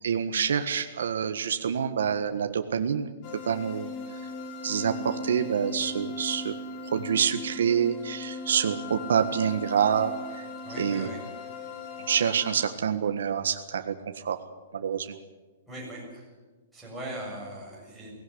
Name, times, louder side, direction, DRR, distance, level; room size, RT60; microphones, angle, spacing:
voice 1, 0.0-3.1 3.4-4.2 4.6-6.5 6.9-10.5 10.8-11.1 12.1-14.4 14.7-15.1, right 7 dB, 85° right, 7 dB, 1.5 m, -27 dB
sound 1, 3.2-12.7, left 2 dB, 25° left, 2.3 m, -38 dB
voice 2, 10.6-11.2 15.7-16.3 16.7-18.1, right 1 dB, ahead, -6 dB, 7.1 m, -39 dB
18.5 x 17.5 x 9.9 m, 1.3 s
hypercardioid pair, 175°, 0 cm